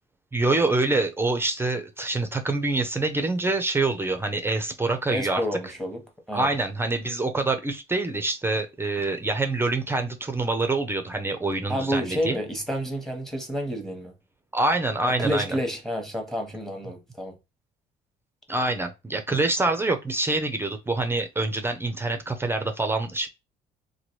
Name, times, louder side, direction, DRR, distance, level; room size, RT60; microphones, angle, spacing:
voice 1, 0.3-5.4 6.3-12.4 14.5-15.6 18.5-23.3, right 2 dB, 15° right, 0.5 m, -26 dB
voice 2, 5.1-6.0 6.3-6.5 11.7-14.2 15.2-17.3, equal, ahead, 0.9 m, -29 dB
2.9 x 2.2 x 3.0 m
cardioid pair, 110°, 17 cm